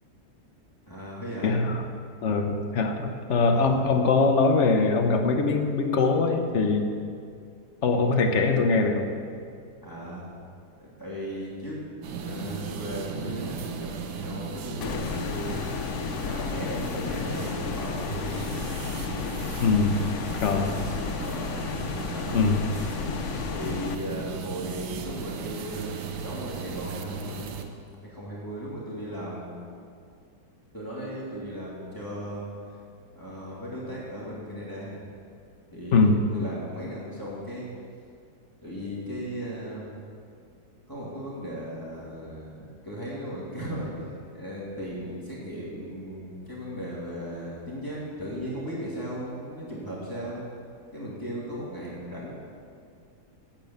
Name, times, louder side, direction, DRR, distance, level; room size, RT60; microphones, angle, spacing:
voice 1, 0.9-1.6 3.5-3.8 7.9-8.1 9.8-10.3 10.8-11.8 12.1-15.6 16.2-18.5 21.2-21.6 22.1-22.5 23.5-27.5 28.0-29.6 30.7-32.5 33.1-35.0 35.7-37.7 38.6-39.9 40.9-42.5 42.8-50.4 50.9-52.3, equal, 10° left, -7 dB, 2.6 m, -36 dB
voice 2, 1.4-1.8 2.2-6.9 7.8-9.1 19.6-20.1 20.4-20.7 22.3-22.6 35.9-36.2, left 4 dB, 50° left, 4 dB, 1.1 m, -22 dB
sound 1, 12.0-27.6, right 5 dB, 80° right, 1.4 m, -36 dB
sound 2, 14.8-24.0, left 8 dB, 65° left, 0.7 m, -33 dB
8.9 x 8.6 x 7.1 m, 2.3 s
omnidirectional pair, 1.8 m